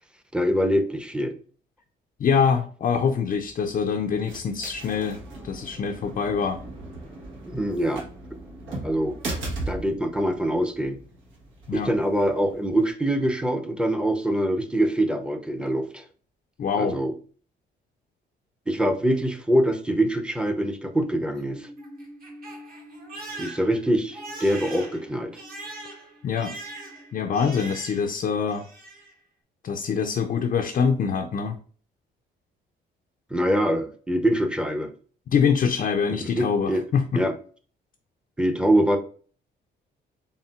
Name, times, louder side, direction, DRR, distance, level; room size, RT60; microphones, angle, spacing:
voice 1, 0.3-1.3 7.4-8.0 8.8-9.2 9.7-11.0 11.7-16.0 16.8-17.1 18.7-21.7 23.4-25.3 33.3-34.9 36.2-36.8 37.1-37.3 38.4-39.0, right 1 dB, 5° right, 6 dB, 0.6 m, -24 dB
voice 2, 2.2-5.2 5.4-6.6 11.7-11.9 16.6-17.0 26.2-26.5 27.1-28.7 29.6-31.6 35.3-37.2, left 6 dB, 45° left, 4 dB, 0.4 m, -24 dB
sound 1, 3.3-12.9, right 2 dB, 80° right, 1.3 m, -38 dB
Crying sobbing, 21.2-28.2 28.5-29.1, right 2 dB, 45° right, 1.7 m, -41 dB
4.3 x 3.5 x 2.4 m, 0.43 s
cardioid pair, 90°, 20 cm